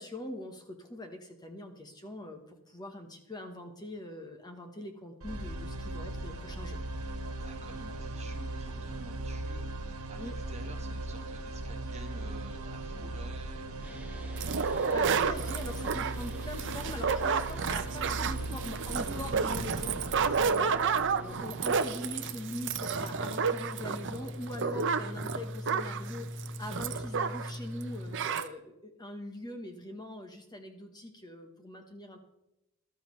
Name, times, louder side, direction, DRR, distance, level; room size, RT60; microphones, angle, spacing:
voice 1, 0.0-6.8 10.2-10.4 14.6-32.2, left 1 dB, 20° left, 4 dB, 1.1 m, -43 dB
sound 1, 5.2-23.2, right 2 dB, 75° right, 1.5 m, -39 dB
voice 2, 7.3-13.8, right 2 dB, 30° right, 3 dB, 1.4 m, -51 dB
sound 2, 13.8-28.2, equal, 5° right, 1.0 m, -44 dB
sound 3, 14.4-27.6 27.8-27.9 28.1-28.5, right 5 dB, 55° right, 0.7 m, -31 dB
14.0 x 12.5 x 3.2 m, 0.86 s
head